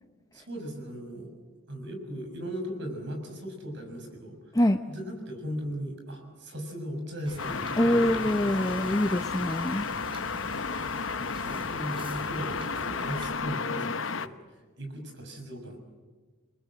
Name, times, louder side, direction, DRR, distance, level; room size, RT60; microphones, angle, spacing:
voice 1, 0.3-1.3 1.7-4.4 4.9-8.8 11.4-14.3 14.8-15.8, equal, 60° right, 5 dB, 6.6 m, -37 dB
Wind / Boat Water vehicle, 7.3-13.3, right 1 dB, 25° right, 4.5 m, -43 dB
sound 1, 7.4-14.3, left 5 dB, 65° left, 0.9 m, -33 dB
voice 2, 7.8-9.9, left 1 dB, 15° left, 8 dB, 0.8 m, -24 dB
29.0 x 22.5 x 7.8 m, 1.4 s
head